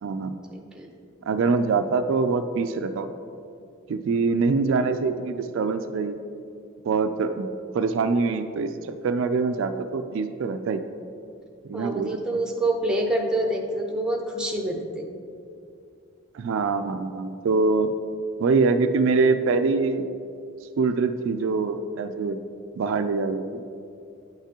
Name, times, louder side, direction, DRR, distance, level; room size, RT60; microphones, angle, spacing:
voice 1, 0.0-0.3 1.3-3.1 3.9-6.2 6.9-7.5 7.7-10.8 11.6-12.1 16.3-17.9 18.4-20.0 20.8-22.4 22.8-23.6, right 4 dB, 60° right, 8 dB, 0.3 m, -24 dB
voice 2, 0.5-0.9 11.7-15.1, right 1 dB, 5° right, 1 dB, 0.6 m, -27 dB
9.2 x 5.8 x 2.9 m, 2.5 s
head